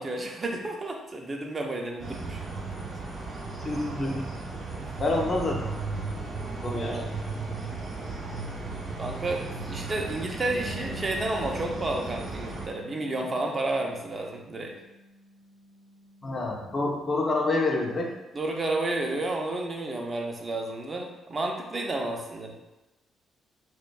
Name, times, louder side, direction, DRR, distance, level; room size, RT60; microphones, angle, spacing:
voice 1, 0.0-2.4 6.7-7.1 9.0-14.7 18.3-22.5, right 2 dB, 40° right, 1 dB, 0.4 m, -31 dB
sound 1, 2.0-12.7, right 3 dB, 55° right, 0.9 m, -35 dB
voice 2, 3.6-4.3 4.9-5.7 6.6-7.0 16.2-18.1, left 2 dB, 45° left, 0 dB, 0.5 m, -28 dB
Bass guitar, 10.4-16.7, right 1 dB, 70° left, 0.8 m, -47 dB
2.5 x 2.2 x 2.3 m, 1.0 s
supercardioid pair, 55°, 0 cm